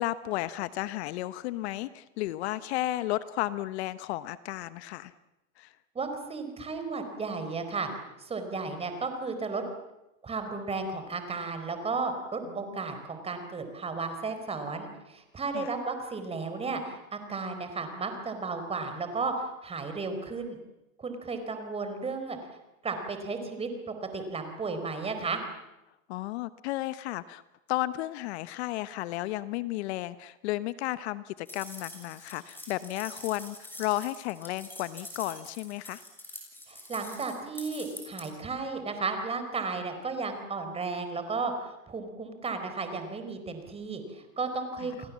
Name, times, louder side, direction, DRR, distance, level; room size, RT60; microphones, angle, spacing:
voice 1, 0.0-5.1 5.6-5.7 15.5-15.7 26.1-27.4 27.7-36.0 44.8-44.9, left 16 dB, 55° left, 15 dB, 1.0 m, -33 dB
voice 2, 5.9-7.9 8.2-9.6 10.2-20.6 21.0-22.4 22.8-25.4 36.7-45.1, right 4 dB, 15° right, 7 dB, 4.4 m, -34 dB
sound 1, 31.5-38.2, left 1 dB, 5° left, 6.6 m, -45 dB
29.5 x 21.0 x 7.4 m, 0.96 s
hypercardioid pair, 135°, 40 cm